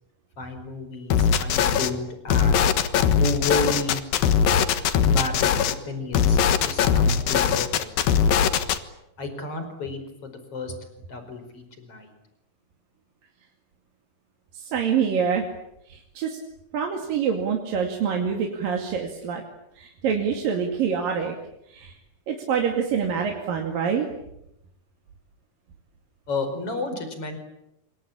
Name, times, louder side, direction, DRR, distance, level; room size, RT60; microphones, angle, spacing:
voice 1, 0.4-2.7 3.2-4.0 5.0-7.9 9.2-10.7 11.1-12.1 26.3-27.4, left 3 dB, 40° left, 7 dB, 5.8 m, -32 dB
sound 1, 1.1-1.9 2.3-5.7 6.1-8.8, left 7 dB, 80° left, 3.1 m, -20 dB
voice 2, 14.5-15.5 15.9-16.4 16.7-19.4 19.8-21.4 21.7-21.9 22.3-24.1, right 7 dB, 75° right, 2 dB, 4.2 m, -26 dB
26.5 x 24.5 x 8.8 m, 0.82 s
omnidirectional pair, 4.1 m